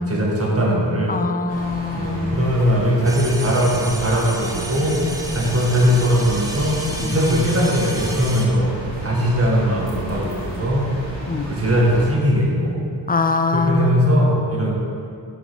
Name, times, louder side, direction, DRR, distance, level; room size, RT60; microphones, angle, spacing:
voice 1, 0.0-1.1 2.0-5.0 5.3-8.7 9.0-10.9 11.4-12.8 13.5-14.8, equal, 30° right, -3 dB, 1.8 m, -19 dB
voice 2, 1.1-2.6 7.0-7.2 11.3-11.5 13.1-14.3, left 3 dB, 20° left, 8 dB, 0.4 m, -23 dB
sound 1, 1.5-12.1, right 1 dB, 70° right, 1.8 m, -33 dB
sound 2, 3.0-8.5, right 1 dB, 10° right, 1.0 m, -32 dB
6.4 x 5.0 x 4.9 m, 2.4 s
cardioid pair, 55°, 45 cm